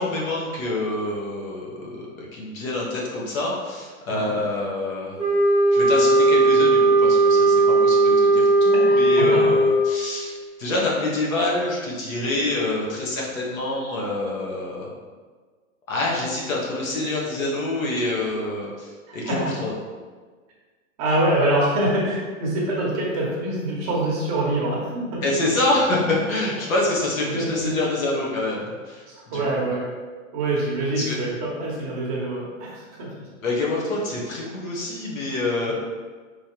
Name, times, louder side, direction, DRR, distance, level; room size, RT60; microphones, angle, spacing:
voice 1, 0.0-5.1 5.7-14.9 15.9-19.7 25.2-29.6 30.9-31.2 33.4-35.7, left 2 dB, 75° left, -3 dB, 1.5 m, -26 dB
sound 1, 5.2-10.1, right 2 dB, 15° left, 0.4 m, -17 dB
voice 2, 8.8-9.4 10.7-10.9 19.1-19.5 21.0-25.2 27.3-27.9 29.1-29.9 30.3-33.1 35.7-35.8, right 1 dB, 30° right, -4 dB, 0.9 m, -25 dB
5.1 x 3.3 x 2.9 m, 1.5 s
supercardioid pair, 165°, 41 cm